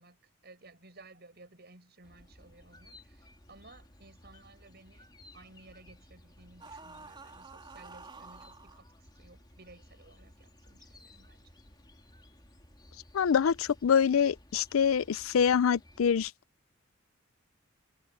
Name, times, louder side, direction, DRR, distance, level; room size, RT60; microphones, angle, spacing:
voice 1, 0.0-11.5, right 2 dB, 50° right, 7.6 m, -57 dB
sound 1, 2.0-16.3, left 1 dB, 20° left, 3.8 m, -57 dB
sound 2, 6.6-8.8, right 4 dB, 25° right, 3.5 m, -49 dB
voice 2, 13.1-16.3, left 7 dB, 85° left, 0.4 m, -25 dB
head